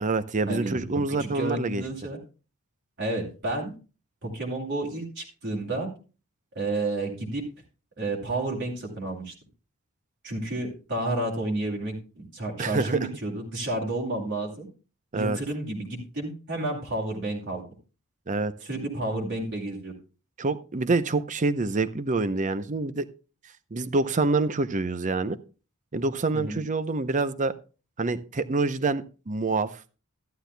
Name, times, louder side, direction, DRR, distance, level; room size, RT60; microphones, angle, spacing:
voice 1, 0.0-1.8 12.6-13.1 15.1-15.4 18.3-18.5 20.4-23.1 23.7-25.4 25.9-27.5 28.0-29.8, right 3 dB, 35° right, 14 dB, 0.6 m, -26 dB
voice 2, 1.1-2.2 3.0-3.7 4.2-5.9 6.5-7.4 8.0-9.3 10.2-14.7 15.1-17.6 18.6-20.0 26.3-26.6, right 2 dB, 55° right, -1 dB, 2.6 m, -31 dB
13.5 x 11.5 x 2.2 m, 0.33 s
head